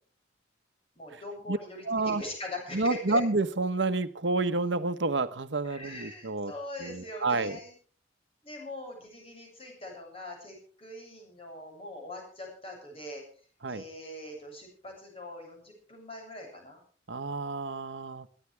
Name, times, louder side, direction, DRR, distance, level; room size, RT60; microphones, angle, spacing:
voice 1, 1.0-3.2 5.6-7.7 8.4-13.2 13.7-16.8, left 1 dB, 30° left, 1 dB, 7.6 m, -42 dB
voice 2, 1.9-2.2 2.7-6.5 6.8-7.6 13.6-13.8 17.1-18.3, right 3 dB, 75° right, 12 dB, 1.1 m, -29 dB
21.5 x 14.5 x 3.5 m, 0.42 s
head